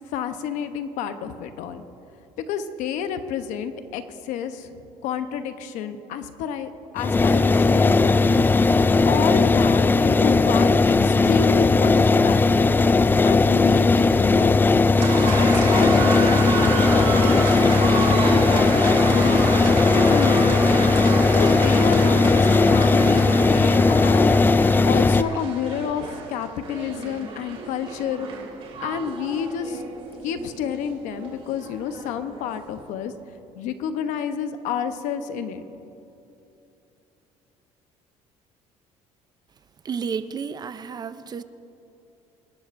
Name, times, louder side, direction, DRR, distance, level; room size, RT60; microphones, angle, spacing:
voice 1, 0.1-1.8 2.4-4.7 5.0-8.4 9.1-12.6 13.2-14.5 15.1-19.5 19.9-20.9 21.3-28.3 28.8-29.8 30.2-33.1 33.5-35.6, left 8 dB, 80° left, 9 dB, 0.9 m, -30 dB
sound 1, 7.0-25.2, left 3 dB, 15° left, 0.3 m, -18 dB
sound 2, 15.0-32.6, right 4 dB, 50° right, 2.6 m, -31 dB
voice 2, 39.8-41.4, right 6 dB, 30° right, 12 dB, 0.5 m, -31 dB
26.5 x 11.5 x 2.6 m, 2.8 s
cardioid pair, 110°, 13 cm